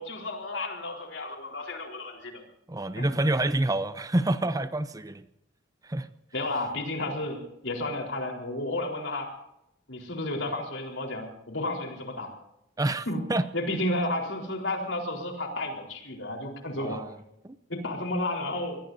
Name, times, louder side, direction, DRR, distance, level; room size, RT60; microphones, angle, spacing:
voice 1, 0.0-2.4 3.0-3.1 6.3-9.3 9.9-12.3 13.1-13.2 13.5-17.0 17.7-18.8, left 1 dB, 85° left, 2 dB, 4.2 m, -32 dB
voice 2, 2.7-5.3 5.8-6.1 12.8-13.4 16.8-17.2 17.4-17.6, right 1 dB, 20° right, 13 dB, 0.6 m, -28 dB
25.5 x 20.5 x 2.7 m, 0.83 s
head